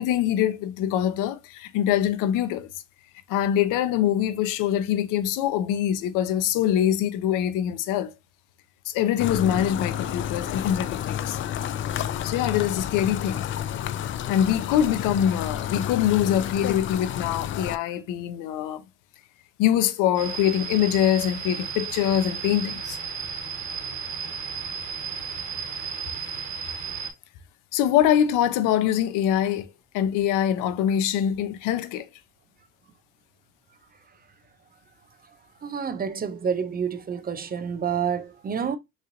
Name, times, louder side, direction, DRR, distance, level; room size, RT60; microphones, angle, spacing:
voice 1, 0.0-2.7 3.3-8.1 8.9-11.4 12.2-13.4 14.3-18.8 19.6-23.0 27.7-32.1, left 10 dB, 70° left, 0.7 m, -24 dB
sound 1, 9.2-17.8, left 10 dB, 40° left, 0.4 m, -30 dB
sound 2, 20.1-27.1, right 6 dB, 60° right, 1.3 m, -34 dB
voice 2, 35.6-38.8, right 7 dB, 30° right, 0.5 m, -28 dB
3.7 x 3.1 x 2.5 m
supercardioid pair, 85°, 32 cm